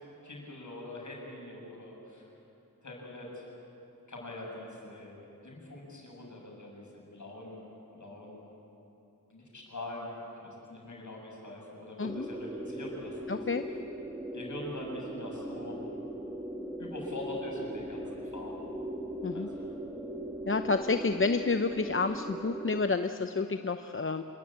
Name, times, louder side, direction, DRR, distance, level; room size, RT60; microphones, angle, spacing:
voice 1, 0.2-2.3 2.8-3.5 4.1-5.1 5.4-7.6 7.9-8.5 9.3-10.1 10.4-13.4 14.3-15.8 16.8-18.6 19.3-19.7, left 1 dB, 60° left, -1 dB, 7.3 m, -43 dB
sound 1, 12.0-22.9, right 1 dB, 10° right, 1.8 m, -39 dB
voice 2, 13.3-13.6 19.2-19.5 20.5-24.2, left 4 dB, 40° left, 8 dB, 0.7 m, -29 dB
27.5 x 21.5 x 8.8 m, 3.0 s
wide cardioid pair, 110°, 34 cm